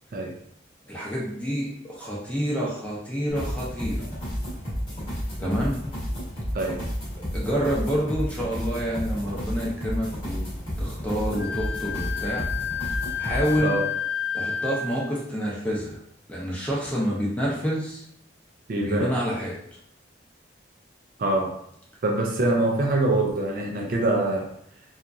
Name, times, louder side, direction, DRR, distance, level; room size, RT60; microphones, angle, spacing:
voice 1, 0.9-4.0 5.4-5.8 7.3-10.4 10.8-12.5 13.2-13.8 14.3-16.0 16.3-18.0 18.8-19.6, equal, 5° left, -5 dB, 0.6 m, -28 dB
sound 1, 3.3-13.6, equal, 25° left, 0.9 m, -32 dB
Wind instrument woodwind instrument, 11.4-15.1, left 7 dB, 80° right, 0.7 m, -30 dB
voice 2, 18.7-19.1 21.2-21.6 22.0-24.5, right 2 dB, 45° right, 1 dB, 0.3 m, -24 dB
2.8 x 2.3 x 2.4 m, 0.70 s
head